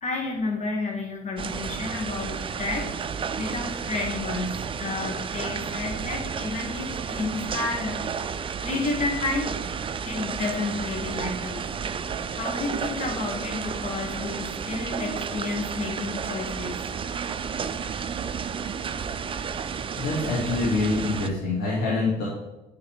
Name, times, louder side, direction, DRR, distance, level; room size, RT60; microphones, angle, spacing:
voice 1, 0.0-2.9 3.4-8.2 8.6-9.5 10.1-11.6 12.3-16.8, left 3 dB, 45° left, 1 dB, 2.0 m, -31 dB
sound 1, 1.4-21.3, right 6 dB, 30° right, 0.5 m, -32 dB
voice 2, 19.9-22.2, left 3 dB, 85° left, -8 dB, 2.7 m, -25 dB
9.7 x 4.0 x 5.0 m, 1.0 s
cardioid pair, 110°, 17 cm